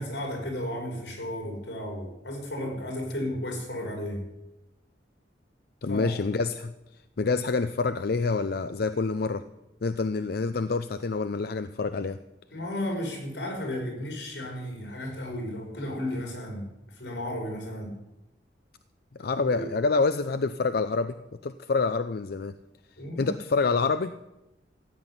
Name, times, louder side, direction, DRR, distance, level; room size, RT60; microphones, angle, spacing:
voice 1, 0.0-4.3 5.9-6.1 12.5-18.0 19.3-19.7 23.0-23.3, left 1 dB, 90° left, 0 dB, 5.6 m, -34 dB
voice 2, 5.8-6.7 7.2-9.4 9.8-12.2 19.2-21.1 21.4-22.5 23.2-24.1, left 4 dB, 60° left, 11 dB, 0.5 m, -27 dB
14.5 x 7.8 x 9.9 m, 0.94 s
head